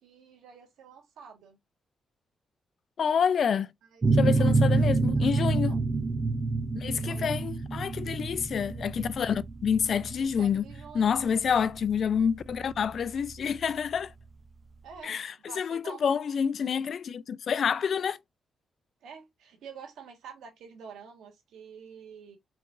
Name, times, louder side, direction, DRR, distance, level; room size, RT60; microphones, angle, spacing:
voice 1, 0.0-1.6 3.9-4.5 5.1-5.8 6.8-7.3 10.2-11.7 14.8-16.0 19.0-22.4, right 6 dB, 90° right, 1.5 m, -48 dB
voice 2, 3.0-3.7 4.1-5.7 6.8-10.6 10.9-14.1 15.0-18.2, left 7 dB, 65° left, 0.4 m, -28 dB
sound 1, 4.0-13.4, right 3 dB, 35° right, 0.5 m, -27 dB
4.3 x 4.2 x 2.5 m
cardioid pair, 75°, 0 cm